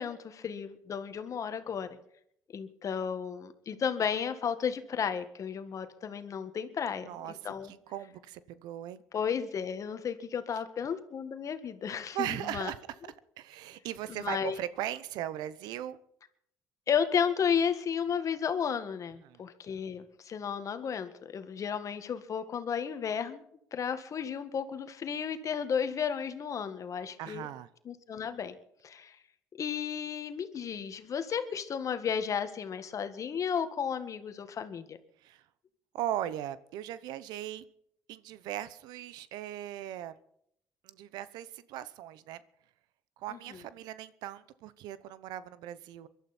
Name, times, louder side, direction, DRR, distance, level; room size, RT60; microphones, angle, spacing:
voice 1, 0.0-1.9 2.5-7.7 9.1-12.7 14.1-14.6 16.9-23.4 23.7-27.5 27.9-28.5 28.8-29.2 29.6-35.0 43.3-43.6, left 7 dB, 50° left, 10 dB, 1.8 m, -33 dB
voice 2, 7.0-9.0 12.1-12.8 13.0-16.0 19.2-19.4 27.2-27.7 35.2-35.4 35.9-37.6 38.1-40.2 40.8-42.4 43.2-46.1, right 12 dB, 80° right, 16 dB, 0.9 m, -38 dB
23.0 x 12.0 x 4.4 m, 0.71 s
supercardioid pair, 75°, 7 cm